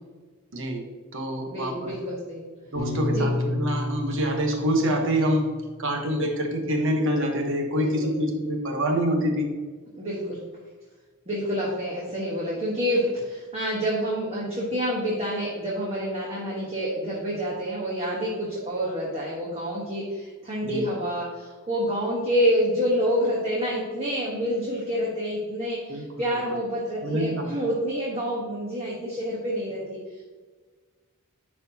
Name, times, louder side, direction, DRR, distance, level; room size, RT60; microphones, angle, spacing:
voice 1, 0.5-0.8 1.1-1.9 2.7-5.5 5.8-9.5 20.6-20.9 25.9-26.0 26.5-26.6 27.0-27.6, equal, 60° right, 2 dB, 1.2 m, -26 dB
voice 2, 1.5-2.5 3.1-3.2 7.8-8.1 9.9-10.4 11.3-30.2, equal, 30° right, -5 dB, 1.2 m, -28 dB
Piano, 2.8-7.2, left 2 dB, 80° right, 2.2 m, -32 dB
11.0 x 4.3 x 2.8 m, 1.4 s
head